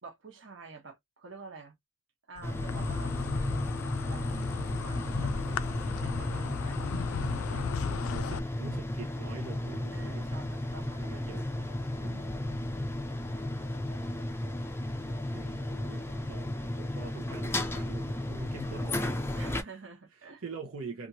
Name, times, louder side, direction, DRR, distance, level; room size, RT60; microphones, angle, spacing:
voice 1, 0.0-1.7 2.3-3.7 4.1-7.7 9.9-11.7 12.0-12.8 19.3-20.4, right 4 dB, 60° right, 1.0 m, -49 dB
Insect, 2.4-8.4, left 6 dB, 90° left, 0.4 m, -35 dB
sound 1, 2.4-19.6, left 1 dB, 10° left, 0.4 m, -34 dB
voice 2, 7.5-7.8 8.1-10.6 11.0-12.7 15.1-19.0 20.4-21.1, right 4 dB, 85° right, 0.7 m, -45 dB
2.9 x 2.5 x 2.7 m
head